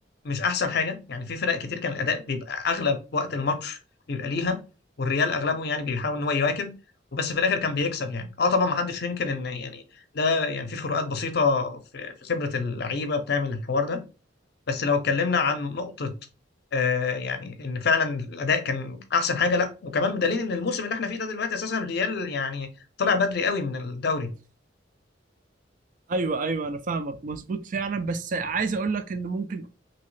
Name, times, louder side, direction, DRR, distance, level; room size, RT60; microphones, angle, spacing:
voice 1, 0.2-3.8 4.1-4.6 5.0-6.7 7.1-9.8 10.1-14.0 14.7-16.1 16.7-22.7 23.0-24.3, left 4 dB, 60° left, 0.6 m, -26 dB
voice 2, 26.1-29.7, right 4 dB, 45° right, 0.4 m, -28 dB
3.0 x 2.8 x 3.1 m
head